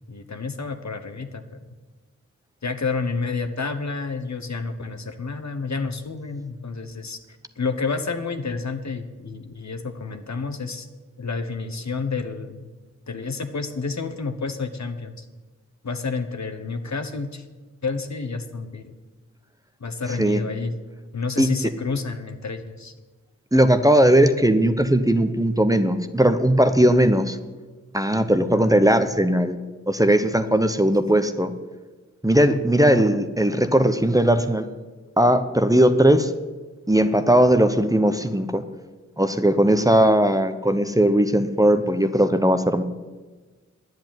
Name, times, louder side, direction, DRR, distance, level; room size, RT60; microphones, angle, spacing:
voice 1, 0.1-1.6 2.6-7.2 7.6-10.9 11.2-12.7 13.1-15.2 15.8-17.4 17.8-19.0 19.8-20.7 21.1-22.9 28.1-28.7, left 4 dB, 65° left, 8 dB, 1.1 m, -30 dB
voice 2, 23.5-27.4 27.9-29.6 29.9-31.5 32.2-34.7 35.2-36.3 36.9-38.6 39.2-42.8, right 1 dB, 10° right, 9 dB, 0.8 m, -18 dB
10.5 x 7.9 x 9.1 m, 1.3 s
wide cardioid pair, 60°, 30 cm